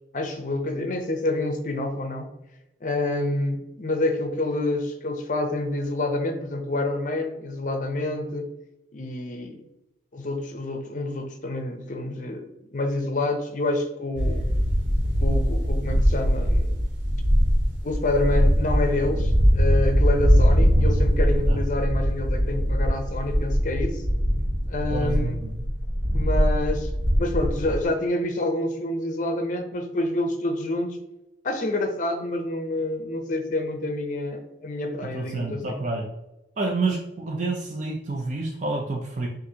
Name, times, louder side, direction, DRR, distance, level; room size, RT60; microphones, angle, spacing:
voice 1, 0.1-2.3 2.8-8.5 8.9-9.6 10.1-12.5 12.7-14.4 15.2-16.7 17.8-24.0 24.7-25.4 26.1-26.9 27.2-31.0 31.4-35.8, left 2 dB, 45° left, 5 dB, 0.6 m, -28 dB
sound 1, 14.2-27.8, equal, 85° right, 1.4 m, -22 dB
voice 2, 24.9-25.6 35.1-36.1 36.6-39.3, right 3 dB, 40° right, 1 dB, 0.5 m, -29 dB
5.7 x 2.6 x 2.8 m, 0.90 s
head